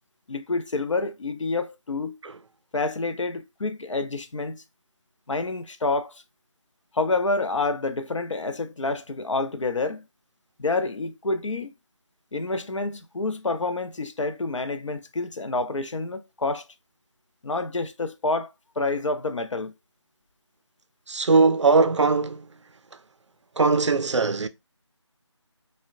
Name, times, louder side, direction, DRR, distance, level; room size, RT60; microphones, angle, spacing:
voice 1, 0.3-2.2 2.7-4.6 5.3-6.2 6.9-10.1 10.6-11.7 12.3-16.6 17.4-19.7, left 3 dB, 80° left, 0.5 m, -28 dB
voice 2, 21.1-22.5 23.6-24.5, right 4 dB, 70° right, 0.4 m, -20 dB
3.5 x 2.1 x 2.4 m
figure-of-eight pair, 165°, 16 cm